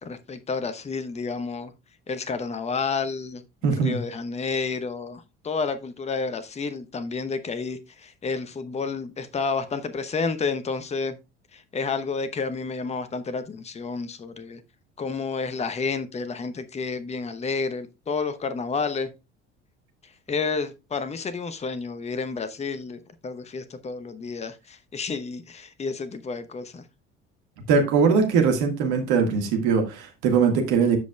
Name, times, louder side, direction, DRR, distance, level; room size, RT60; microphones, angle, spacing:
voice 1, 0.0-1.7 2.1-3.4 3.8-11.2 11.5-14.6 15.0-19.1 20.0-26.8, left 4 dB, 20° left, 0.9 m, -30 dB
voice 2, 3.6-4.0 27.7-31.0, right 5 dB, 55° right, 1.8 m, -21 dB
14.5 x 5.2 x 2.3 m
figure-of-eight pair, 60°, 35 cm